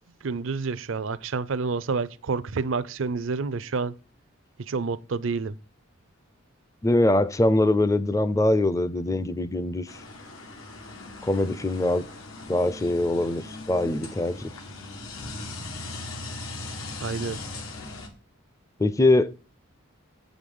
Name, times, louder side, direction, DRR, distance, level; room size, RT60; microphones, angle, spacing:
voice 1, 0.2-3.9 4.6-5.6 17.0-17.4, right 4 dB, 70° right, 0.5 m, -29 dB
voice 2, 6.8-9.9 11.2-12.0 12.5-13.4 13.7-14.4 18.8-19.3, left 1 dB, 15° left, 0.4 m, -22 dB
sound 1, 9.9-18.1, left 2 dB, 90° left, 2.0 m, -39 dB
8.0 x 5.0 x 5.3 m
head